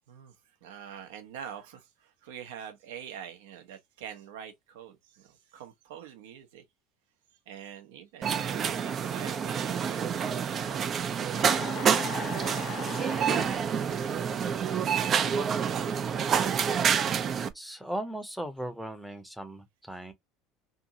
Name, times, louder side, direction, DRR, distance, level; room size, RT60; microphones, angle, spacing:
voice 1, 0.1-6.6 7.5-10.1 10.5-11.9, right 9 dB, 65° right, 0.7 m, -45 dB
sound 1, 8.2-17.5, right 7 dB, 40° right, 0.4 m, -28 dB
sound 2, 11.4-13.6, left 10 dB, 45° left, 0.5 m, -39 dB
voice 2, 17.2-20.1, right 1 dB, ahead, 0.7 m, -38 dB
2.7 x 2.6 x 2.7 m
figure-of-eight pair, 70°, 0 cm